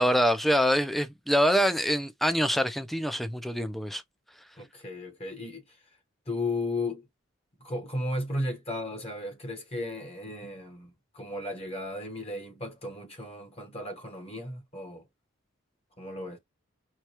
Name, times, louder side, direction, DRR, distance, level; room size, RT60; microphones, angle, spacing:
voice 1, 0.0-4.0, equal, ahead, 0.4 m, -25 dB
voice 2, 4.6-5.8 6.3-7.0 7.6-15.0 16.0-16.4, left 2 dB, 30° left, 1.1 m, -35 dB
4.7 x 2.2 x 2.9 m
head